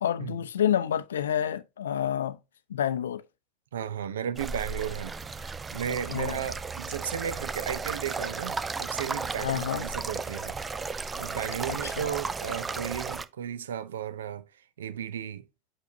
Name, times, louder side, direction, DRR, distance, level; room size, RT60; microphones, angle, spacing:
voice 1, 0.0-2.4 2.7-3.2 6.1-6.5 9.4-9.9 11.7-12.1, left 10 dB, 70° left, 0.5 m, -29 dB
voice 2, 3.7-10.6 11.2-14.5 14.8-15.4, right 9 dB, 70° right, 0.6 m, -35 dB
sound 1, 4.4-13.3, right 4 dB, 20° right, 0.5 m, -34 dB
8.3 x 5.0 x 2.6 m
figure-of-eight pair, 80°, 0 cm